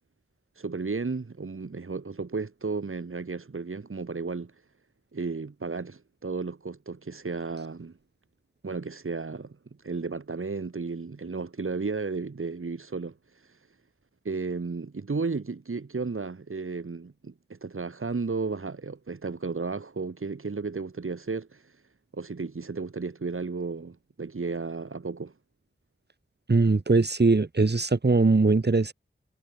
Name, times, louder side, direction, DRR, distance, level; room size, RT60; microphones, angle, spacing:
voice 1, 0.6-4.5 5.1-7.9 8.6-9.6 9.8-13.6 14.2-21.8 22.1-25.3, right 4 dB, 85° right, 5.8 m, -33 dB
voice 2, 26.5-28.9, right 3 dB, 55° right, 2.8 m, -21 dB
wide cardioid pair, 70°, 21 cm